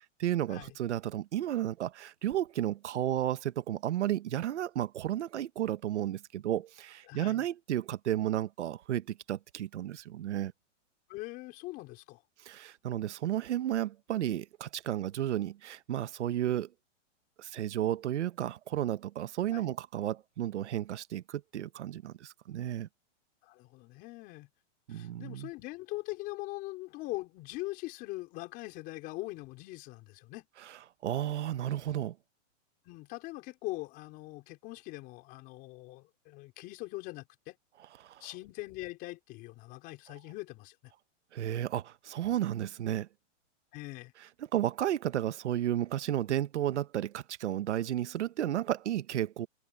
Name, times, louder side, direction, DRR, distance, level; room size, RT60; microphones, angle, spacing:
voice 1, 0.2-10.5 12.4-16.7 17.4-22.9 24.9-25.5 31.0-32.1 38.0-38.2 41.3-43.1 44.5-49.5, right 12 dB, 65° right, 1.2 m, -33 dB
voice 2, 7.1-7.4 11.1-12.2 19.5-19.7 23.4-24.5 24.9-30.5 32.8-37.6 38.2-40.8 43.7-44.1, left 20 dB, 25° left, 5.0 m, -42 dB
hypercardioid pair, 175°, 37 cm